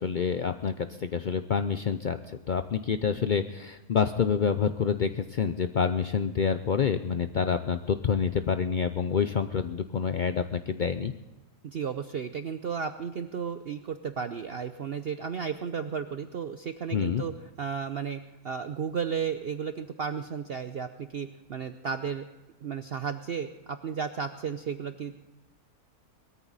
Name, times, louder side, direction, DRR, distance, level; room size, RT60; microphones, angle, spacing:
voice 1, 0.0-11.1 16.9-17.2, left 6 dB, 85° left, 9 dB, 0.4 m, -27 dB
voice 2, 11.6-22.2 22.6-25.1, right 6 dB, 55° right, 9 dB, 0.7 m, -34 dB
20.0 x 13.5 x 4.1 m, 1.1 s
omnidirectional pair, 1.6 m